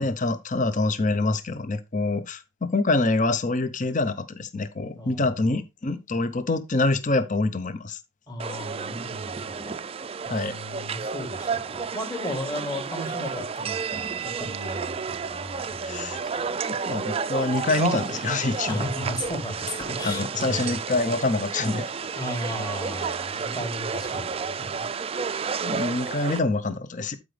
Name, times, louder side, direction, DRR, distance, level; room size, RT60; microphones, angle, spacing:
voice 1, 0.0-8.0 10.3-10.6 15.8-16.2 16.7-18.8 20.0-21.9 25.6-27.2, left 3 dB, 40° left, 0.7 m, -26 dB
voice 2, 5.0-5.6 8.3-9.8 10.2-16.6 18.6-20.7 22.1-24.9, equal, 20° left, 3.0 m, -35 dB
sound 1, 8.4-26.4, right 5 dB, 30° right, 0.4 m, -31 dB
12.0 x 5.2 x 3.3 m
head